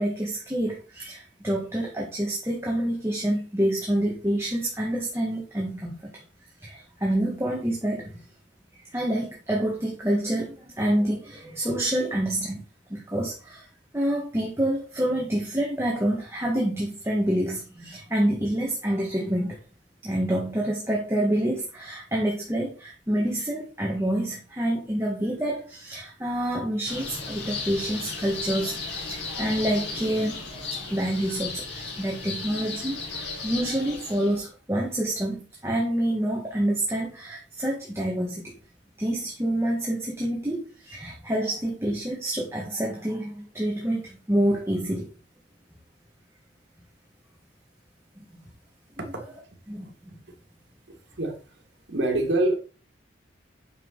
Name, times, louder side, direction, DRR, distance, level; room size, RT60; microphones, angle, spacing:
voice 1, 0.0-6.0 6.6-8.2 8.9-12.6 12.9-13.7 13.9-19.6 20.0-38.5 39.0-45.0 48.3-48.5 49.7-49.9, right 1 dB, 15° right, -3 dB, 1.9 m, -27 dB
sound 1, 26.9-34.4, left 4 dB, 75° left, 2.8 m, -35 dB
voice 2, 50.9-51.4 51.9-52.6, right 2 dB, 85° right, 2 dB, 2.1 m, -25 dB
8.7 x 6.1 x 4.0 m, 0.35 s
head